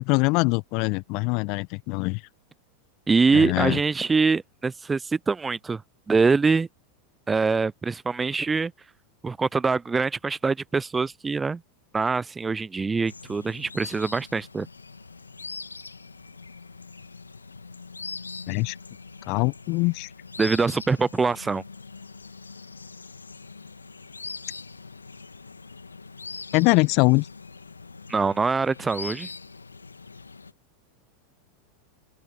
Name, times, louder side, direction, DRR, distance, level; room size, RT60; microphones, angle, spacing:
voice 1, 0.0-2.2 3.3-3.8 18.5-18.8 19.3-20.1 26.5-27.3, left 28 dB, 50° left, 1.0 m, -23 dB
voice 2, 3.1-5.8 6.1-6.7 7.3-8.7 9.2-11.6 11.9-14.7 20.4-21.6 28.1-29.3, right 4 dB, 15° right, 0.4 m, -24 dB
sound 1, 13.1-30.5, left 4 dB, 85° left, 2.1 m, -42 dB
open air
figure-of-eight pair, 90°, 0 cm